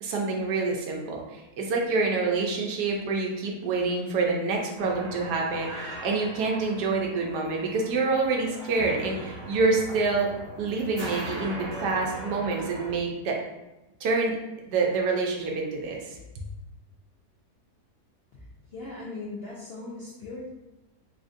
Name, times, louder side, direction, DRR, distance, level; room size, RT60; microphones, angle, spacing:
voice 1, 0.0-10.3 10.6-13.4 14.0-14.4 14.7-16.2, right 3 dB, 85° right, -1 dB, 1.2 m, -27 dB
sound 1, 4.8-12.9, right 1 dB, 50° right, 0.7 m, -39 dB
voice 2, 18.7-20.5, left 3 dB, 85° left, -6 dB, 0.5 m, -38 dB
3.6 x 2.5 x 2.4 m, 1.0 s
omnidirectional pair, 1.7 m